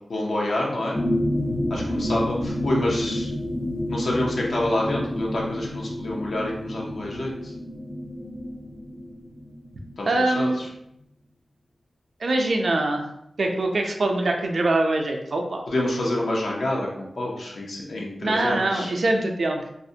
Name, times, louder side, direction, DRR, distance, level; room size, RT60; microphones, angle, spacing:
voice 1, 0.1-1.0 1.7-3.3 3.9-7.5 10.0-10.7 15.7-18.9, left 1 dB, 75° left, -3 dB, 0.5 m, -27 dB
sound 1, 0.9-10.2 10.5-10.6, left 1 dB, 15° left, 0.4 m, -29 dB
voice 2, 10.1-10.6 12.2-13.1 13.4-15.6 18.2-19.7, right 2 dB, 70° right, 2 dB, 0.3 m, -23 dB
2.4 x 2.1 x 2.6 m, 0.79 s
wide cardioid pair, 65°, 0 cm